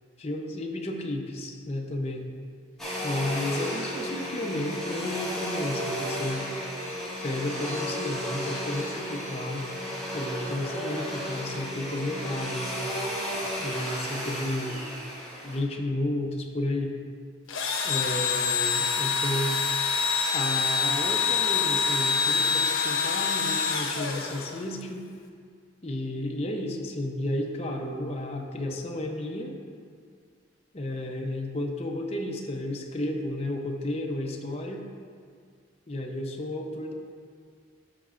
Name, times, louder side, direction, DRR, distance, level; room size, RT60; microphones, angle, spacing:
voice 1, 0.2-2.2 3.0-6.4 7.2-9.7 10.1-12.9 13.6-14.9 15.4-16.9 17.8-19.6 20.3-25.1 25.8-29.5 30.7-34.8 35.9-36.9, left 1 dB, 30° left, 1 dB, 0.7 m, -32 dB
Domestic sounds home sounds, 2.8-15.6, equal, ahead, 1.7 m, -33 dB
Engine / Drill, 17.5-24.8, left 5 dB, 85° left, 0.8 m, -26 dB
13.5 x 5.3 x 2.5 m, 2.1 s
head